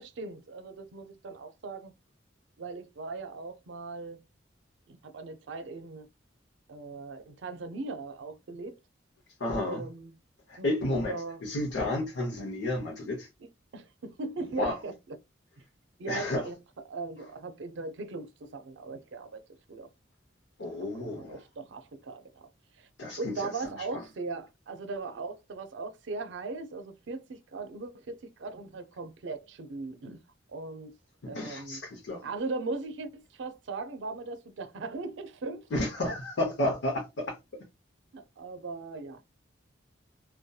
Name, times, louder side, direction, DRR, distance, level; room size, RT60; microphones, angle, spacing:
voice 1, 0.0-1.9 2.6-4.2 4.9-6.1 6.7-8.8 9.6-10.1 10.6-10.7 11.1-11.4 13.7-14.9 16.0-16.6 16.9-19.4 19.7-19.9 20.7-22.5 22.8-22.9 23.2-30.2 30.5-31.0 31.3-31.8 32.2-35.7 36.0-36.2 38.1-39.2, right 3 dB, 80° right, 0.5 m, -39 dB
voice 2, 9.4-9.8 10.5-11.2 11.4-13.3 14.6-14.8 16.1-16.5 20.6-21.4 23.0-23.5 23.9-24.0 31.2-32.2 35.7-37.4, left 1 dB, 80° left, 0.7 m, -31 dB
2.7 x 2.2 x 2.2 m
head